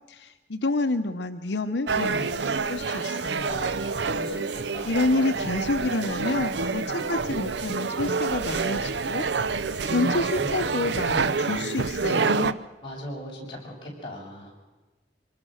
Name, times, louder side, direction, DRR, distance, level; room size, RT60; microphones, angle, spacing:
voice 1, 0.1-3.5 4.9-9.3 9.9-12.6, left 2 dB, 80° left, 7 dB, 0.9 m, -28 dB
sound 1, 1.9-12.5, right 4 dB, 75° right, 0.7 m, -27 dB
voice 2, 3.3-5.0 10.0-10.6 12.8-14.5, left 1 dB, 30° left, -3 dB, 7.0 m, -39 dB
25.5 x 20.0 x 6.4 m, 1.2 s
head